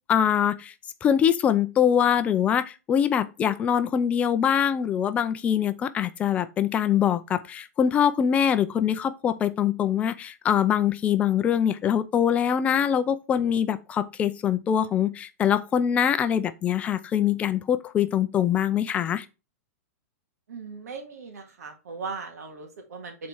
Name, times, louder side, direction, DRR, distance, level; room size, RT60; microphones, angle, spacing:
voice 1, 0.1-0.7 1.0-19.3, left 9 dB, 15° left, 0.5 m, -23 dB
voice 2, 20.5-23.3, right 4 dB, 85° right, 2.1 m, -38 dB
7.5 x 4.2 x 4.6 m
supercardioid pair, 160°, 8 cm